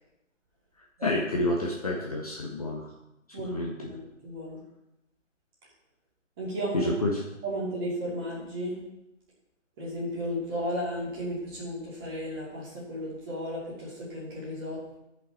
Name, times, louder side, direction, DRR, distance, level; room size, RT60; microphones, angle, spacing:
voice 1, 1.0-2.9 3.4-3.7 6.7-7.2, left 1 dB, 30° left, -2 dB, 0.9 m, -28 dB
voice 2, 4.2-4.6 6.4-6.9 7.4-8.8 9.8-15.0, equal, 20° right, -6 dB, 2.6 m, -34 dB
13.5 x 5.4 x 4.2 m, 0.88 s
figure-of-eight pair, 150°, 38 cm